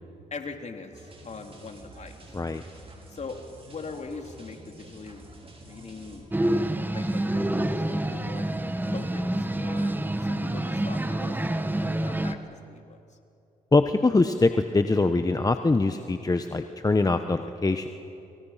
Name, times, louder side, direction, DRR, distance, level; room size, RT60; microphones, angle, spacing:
voice 1, 0.3-2.2 3.1-3.4 3.7-5.3 5.6-6.2 6.9-7.8 8.1-8.5 8.9-13.2, left 4 dB, 45° left, 4 dB, 3.2 m, -41 dB
sound 1, 0.9-7.8 8.1-8.2, right 2 dB, 35° right, 5.8 m, -49 dB
sound 2, 6.3-12.3, right 1 dB, 10° right, 1.7 m, -27 dB
voice 2, 13.7-17.9, left 3 dB, 25° left, 8 dB, 1.2 m, -23 dB
29.0 x 26.5 x 5.9 m, 2.7 s
supercardioid pair, 50°, 16 cm